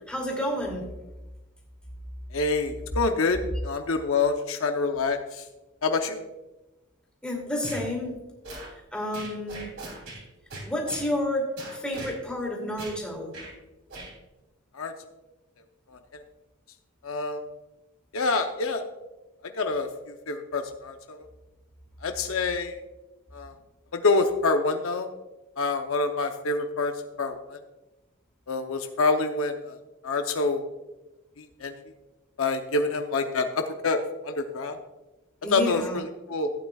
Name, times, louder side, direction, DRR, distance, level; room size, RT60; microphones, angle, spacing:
voice 1, 0.1-0.9 7.2-8.2 8.9-9.7 10.6-13.3 35.4-36.0, left 1 dB, 5° left, -1 dB, 2.5 m, -30 dB
voice 2, 2.3-5.4 5.8-6.2 14.7-14.9 15.9-16.2 17.0-17.4 18.1-18.8 19.4-21.2 22.0-22.8 23.3-23.5 23.9-25.1 25.6-26.9 27.2-27.6 28.5-29.8 30.0-30.6 31.4-31.7 32.4-34.8 35.5-36.5, left 3 dB, 75° left, 5 dB, 0.7 m, -27 dB
sound 1, 7.6-7.9 8.4-8.7 9.1-10.2 10.5-11.1 11.6-12.1 12.8-13.0 13.3-13.5 13.9-14.1, right 2 dB, 65° right, 3.2 m, -39 dB
15.5 x 8.9 x 2.3 m, 1.1 s
head